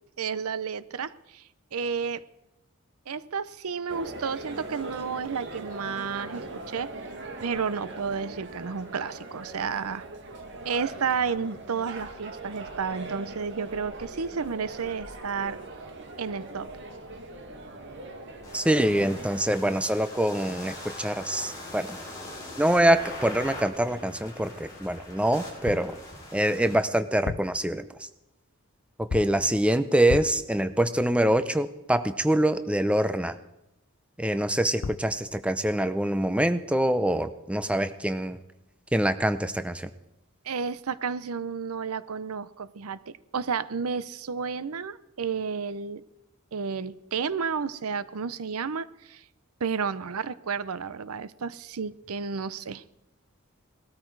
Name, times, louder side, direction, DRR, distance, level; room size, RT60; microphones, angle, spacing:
voice 1, 0.2-1.4 1.7-2.2 3.1-6.9 7.4-10.1 10.6-15.6 16.2-16.7 40.4-46.0 46.5-49.2 49.6-52.8, right 6 dB, 90° right, 17 dB, 0.7 m, -31 dB
sound 1, 3.9-19.5, right 2 dB, 55° right, 1.9 m, -41 dB
sound 2, 18.4-26.7, left 1 dB, 15° left, 7.3 m, -42 dB
voice 2, 18.5-22.0 22.6-26.0 26.3-27.9 29.1-33.4 34.2-38.4 38.9-39.9, right 1 dB, 5° right, 11 dB, 0.6 m, -25 dB
sound 3, 25.7-26.0 27.1-27.6 29.1-29.5 30.1-30.5 34.5-34.6 34.8-35.2, left 4 dB, 55° left, 0.5 m, -34 dB
19.0 x 13.5 x 4.7 m, 0.89 s
head